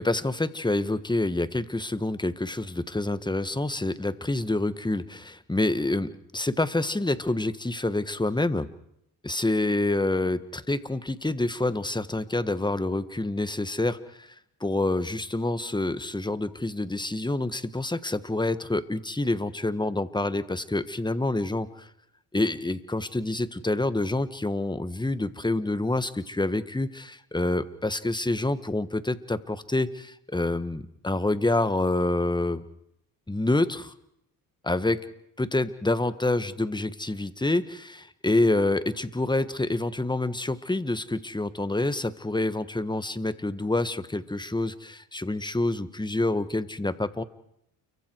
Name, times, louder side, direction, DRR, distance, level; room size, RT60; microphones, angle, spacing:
voice 1, 0.0-8.7 9.2-14.3 14.6-21.9 22.3-32.6 33.3-33.9 34.6-35.0 35.4-47.2, left 2 dB, 10° left, 13 dB, 1.7 m, -27 dB
29.5 x 24.0 x 4.7 m, 0.76 s
supercardioid pair, 70°, 46 cm